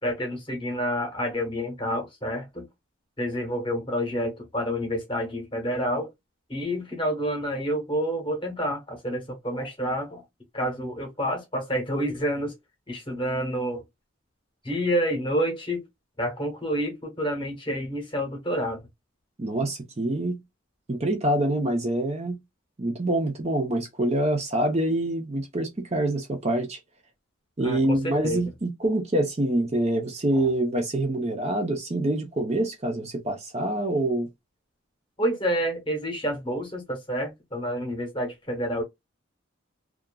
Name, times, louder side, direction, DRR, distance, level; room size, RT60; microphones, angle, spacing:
voice 1, 0.0-2.7 3.2-6.1 6.5-10.2 10.5-12.6 12.9-13.8 14.6-15.8 16.2-18.9 27.6-28.4 30.3-30.5 35.2-38.8, equal, 25° left, 1.0 m, -28 dB
voice 2, 19.4-20.4 20.9-22.4 22.8-26.8 27.6-34.3, right 1 dB, 30° right, 0.6 m, -26 dB
2.8 x 2.4 x 2.2 m
head